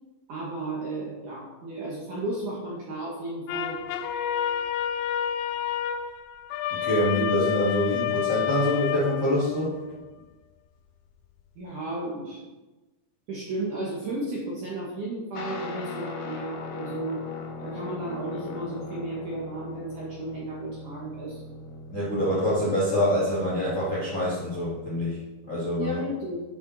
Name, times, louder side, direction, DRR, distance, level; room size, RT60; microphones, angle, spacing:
voice 1, 0.3-3.8 11.6-12.4 13.3-17.2 17.6-21.4 25.8-26.4, right 2 dB, 65° right, -5 dB, 2.1 m, -34 dB
sound 1, 3.5-9.7, left 10 dB, 90° left, 3.1 m, -29 dB
voice 2, 6.8-9.7 21.9-25.2 25.5-26.0, equal, 35° left, -7 dB, 1.2 m, -25 dB
Guitar, 15.4-25.1, left 3 dB, 70° left, 3.0 m, -40 dB
9.5 x 6.6 x 4.1 m, 1.2 s
omnidirectional pair, 5.4 m